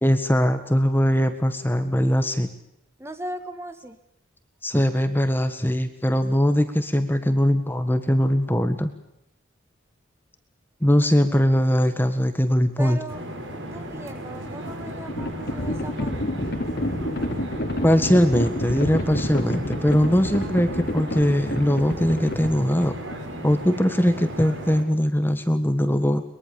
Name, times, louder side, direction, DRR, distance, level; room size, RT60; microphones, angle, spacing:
voice 1, 0.0-2.5 4.6-8.9 10.8-13.0 17.8-22.9 23.4-26.2, equal, 10° left, 9 dB, 1.6 m, -21 dB
voice 2, 3.0-4.0 12.8-13.2 13.7-16.4, equal, 10° right, 9 dB, 1.6 m, -37 dB
sound 1, 13.1-24.8, right 1 dB, 70° right, 5.6 m, -35 dB
Livestock farm animals working animals, 14.3-23.4, left 1 dB, 50° left, 2.6 m, -29 dB
23.0 x 22.5 x 7.1 m, 0.78 s
head